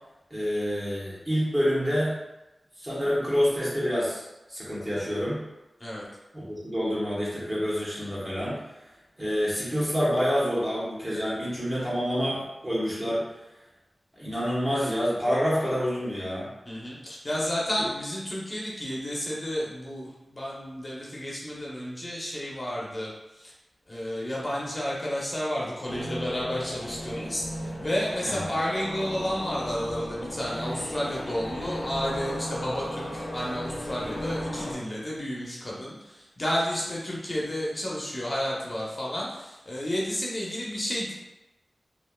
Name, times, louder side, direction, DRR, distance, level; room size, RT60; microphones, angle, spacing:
voice 1, 0.3-2.2 2.8-4.2 4.5-5.4 6.3-8.6 9.2-13.3 14.1-16.5 28.2-28.4, equal, 25° right, -7 dB, 1.2 m, -27 dB
voice 2, 16.7-23.5 23.9-41.1, equal, 35° left, -5 dB, 0.6 m, -31 dB
sound 1, 25.8-34.7, equal, 90° left, 0.6 m, -36 dB
3.2 x 2.5 x 2.2 m, 0.98 s
wide cardioid pair, 75°, 0 cm